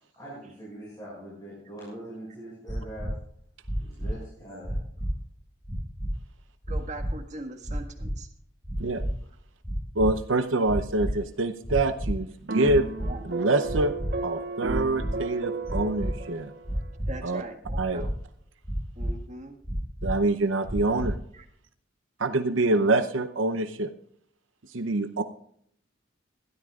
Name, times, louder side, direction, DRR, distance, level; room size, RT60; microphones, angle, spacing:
voice 1, 0.1-3.1 3.8-4.8, right 1 dB, 20° left, -6 dB, 6.0 m, -42 dB
sound 1, 2.7-3.1 3.6-4.1 4.6-5.1 5.6-6.1 6.6-7.1 7.6-8.1 8.6-9.1 9.6-10.1 10.6-11.1 11.6-12.1 12.6-13.1 13.6-14.1 14.6-15.1 15.6-16.1 16.6-17.1 17.6-18.1 18.6-19.1 19.6-20.1 20.6-21.1, equal, ahead, 6.4 m, -31 dB
voice 2, 6.7-8.3 13.0-13.2 17.1-18.1 19.0-19.6 21.3-21.5, right 2 dB, 40° right, 4 dB, 1.7 m, -40 dB
voice 3, 10.0-12.9 13.3-13.9 14.2-16.5 17.2-17.4 17.8-18.1 20.0-21.1 22.2-23.9 24.7-25.2, right 2 dB, 85° right, 9 dB, 0.7 m, -25 dB
sound 2, 12.5-16.9, right 3 dB, 60° right, 1.1 m, -34 dB
21.0 x 13.0 x 2.4 m, 0.66 s
head